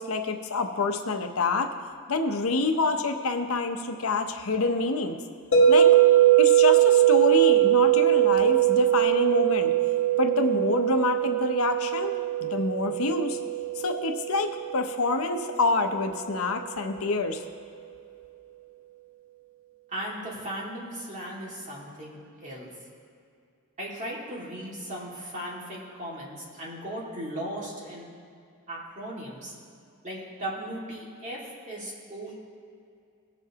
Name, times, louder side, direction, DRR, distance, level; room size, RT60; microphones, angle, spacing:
voice 1, 0.0-1.7 2.1-5.2 5.7-5.9 6.4-9.7 10.2-12.1 12.4-13.4 13.8-17.4, left 3 dB, 85° left, 5 dB, 0.8 m, -27 dB
sound 1, 5.5-15.6, right 12 dB, 65° left, 1.2 m, -21 dB
voice 2, 19.9-22.7 23.8-28.1 28.7-29.5 30.0-31.4 31.7-32.4, right 1 dB, 35° right, -5 dB, 2.2 m, -37 dB
19.0 x 7.1 x 2.9 m, 2.4 s
head